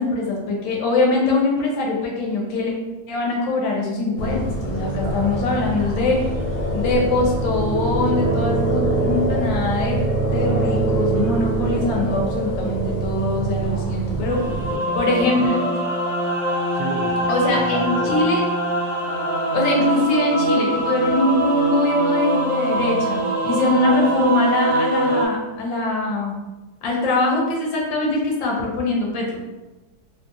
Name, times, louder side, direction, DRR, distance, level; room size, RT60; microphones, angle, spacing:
voice 1, 0.0-2.7 3.1-6.3 6.7-14.4 15.0-15.7 17.3-18.4 19.5-26.4 26.8-29.3, left 2 dB, 75° left, -1 dB, 1.4 m, -22 dB
sound 1, 4.2-14.8, right 2 dB, 45° left, 0.8 m, -24 dB
voice 2, 4.9-5.5 13.6-14.0 14.4-15.5 16.7-18.3, right 3 dB, 75° right, 0 dB, 1.2 m, -34 dB
sound 2, 14.3-25.3, right 1 dB, 50° right, 1.0 m, -23 dB
3.6 x 2.1 x 2.5 m, 1.1 s
omnidirectional pair, 2.1 m